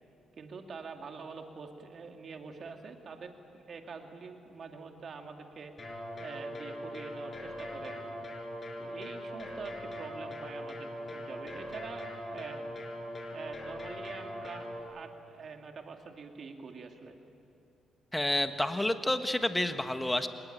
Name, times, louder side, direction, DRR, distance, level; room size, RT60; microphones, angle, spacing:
voice 1, 0.4-5.7 6.2-8.0 8.8-12.7 13.3-17.2, right 4 dB, 50° right, 4 dB, 2.5 m, -45 dB
sound 1, 5.8-14.8, equal, 30° left, 5.3 m, -41 dB
voice 2, 18.1-20.3, left 1 dB, 10° left, 8 dB, 1.5 m, -29 dB
26.5 x 20.5 x 9.2 m, 2.6 s
cardioid pair, 90°, 0 cm